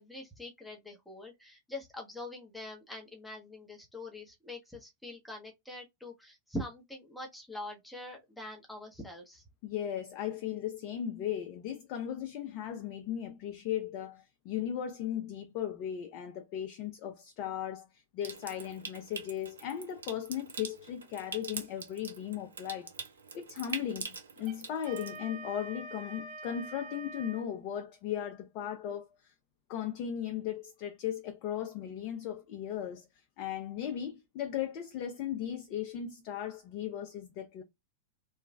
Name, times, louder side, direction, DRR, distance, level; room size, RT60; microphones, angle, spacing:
voice 1, 0.0-9.4, left 1 dB, ahead, 0.7 m, -44 dB
voice 2, 9.6-22.9 23.3-29.3 29.7-33.1 33.4-37.6, left 10 dB, 45° left, 0.4 m, -37 dB
Water tap faucet / Sink (filling or washing) / Trickle dribble, 18.2-25.2, right 5 dB, 70° right, 0.5 m, -44 dB
Wind instrument woodwind instrument, 24.4-27.5, right 2 dB, 30° right, 1.4 m, -45 dB
3.1 x 2.3 x 2.2 m
figure-of-eight pair, 90°, 0 cm